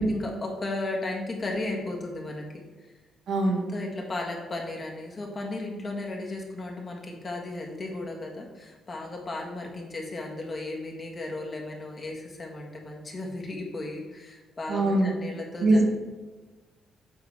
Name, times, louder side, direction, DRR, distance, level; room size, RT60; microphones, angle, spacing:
voice 1, 0.0-2.9 3.7-15.8, left 2 dB, 35° left, 0 dB, 1.7 m, -35 dB
voice 2, 3.3-3.6 14.7-15.1 15.6-15.8, right 2 dB, 70° right, -1 dB, 1.8 m, -22 dB
7.9 x 3.9 x 4.8 m, 1.2 s
cardioid pair, 90°, 0 cm